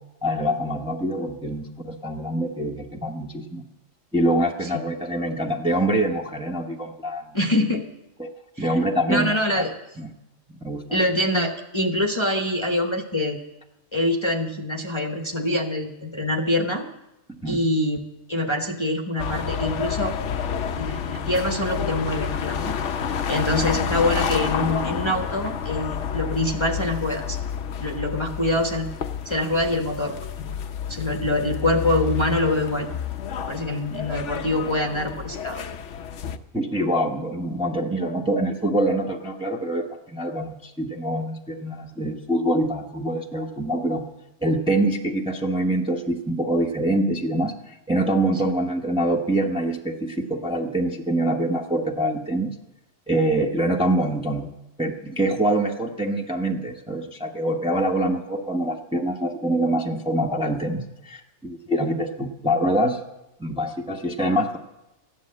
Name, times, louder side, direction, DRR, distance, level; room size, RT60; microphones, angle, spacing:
voice 1, 0.2-3.6 4.1-7.4 8.2-8.3 8.6-9.6 10.0-10.1 10.5-11.0 17.3-17.6 36.5-44.0 44.4-52.6 53.1-54.5 54.8-63.0 63.4-64.6, right 1 dB, 5° right, 1 dB, 0.9 m, -25 dB
voice 2, 7.3-7.9 8.6-8.8 9.1-9.7 10.9-13.4 13.9-16.8 17.4-18.0 18.3-20.1 20.8-22.8 23.3-27.4 27.8-28.9 29.2-30.5 30.9-32.9 33.5-35.6 48.4-48.5, left 1 dB, 25° left, 3 dB, 1.0 m, -25 dB
sound 1, 19.2-36.4, left 7 dB, 65° left, 1.0 m, -29 dB
14.5 x 10.5 x 7.5 m, 0.94 s
omnidirectional pair, 1.4 m